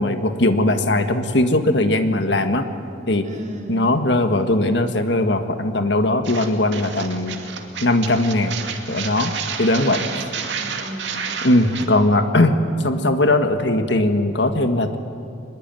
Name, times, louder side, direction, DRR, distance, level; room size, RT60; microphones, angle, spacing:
voice 1, 0.0-2.7 3.1-3.2 3.7-7.4 7.8-8.6 8.9-9.3 9.6-10.0 11.4-15.0, left 1 dB, 65° left, 7 dB, 1.7 m, -19 dB
voice 2, 3.2-3.9 9.7-11.9, equal, 40° right, 0 dB, 3.8 m, -37 dB
sound 1, 6.2-11.9, right 6 dB, 70° right, 2.4 m, -30 dB
24.0 x 21.5 x 9.1 m, 2.5 s
head